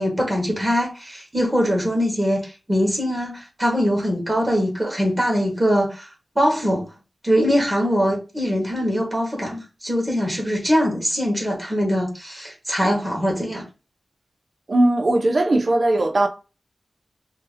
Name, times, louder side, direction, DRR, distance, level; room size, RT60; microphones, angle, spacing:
voice 1, 0.0-6.1 6.3-6.8 7.2-13.6, equal, 15° right, 1.3 m, -22 dB
voice 2, 14.7-16.3, right 2 dB, 45° right, 0.4 m, -18 dB
2.7 x 2.6 x 3.8 m
wide cardioid pair, 125°, 0 cm